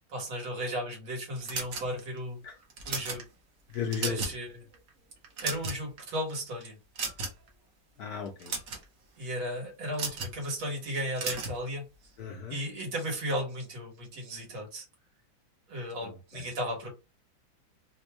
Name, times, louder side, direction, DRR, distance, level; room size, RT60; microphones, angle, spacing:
voice 1, 0.1-3.3 4.0-4.6 5.4-6.8 9.2-11.8 12.5-14.9 15.7-16.9, equal, 80° right, 2.4 m, -35 dB
sound 1, 1.5-2.2 2.7-3.2 3.7-4.4 4.7-4.9 5.2-6.0 7.0-7.5 8.3-8.8 9.9-10.4 11.2-11.6, right 4 dB, 55° right, 1.2 m, -34 dB
voice 2, 3.7-4.2 8.0-8.5 12.2-12.6 16.0-16.4, left 6 dB, 65° left, 1.0 m, -35 dB
4.4 x 2.3 x 3.0 m
omnidirectional pair, 2.2 m